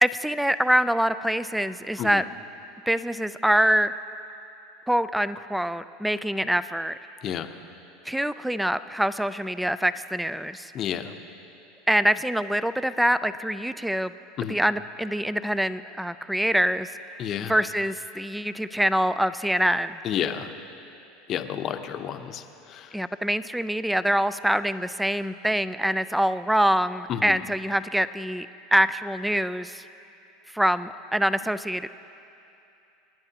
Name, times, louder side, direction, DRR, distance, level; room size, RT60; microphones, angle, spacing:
voice 1, 0.0-2.2 2.9-3.9 4.9-7.0 8.1-10.7 11.9-14.1 14.5-16.9 17.5-20.0 22.9-29.8 30.5-31.9, equal, 5° right, 14 dB, 0.4 m, -25 dB
voice 2, 10.7-11.2 14.4-14.6 17.2-17.5 20.0-20.6 21.3-23.0 27.1-27.4, left 9 dB, 40° left, 8 dB, 0.8 m, -31 dB
27.5 x 10.5 x 2.9 m, 2.7 s
supercardioid pair, 120°, 0 cm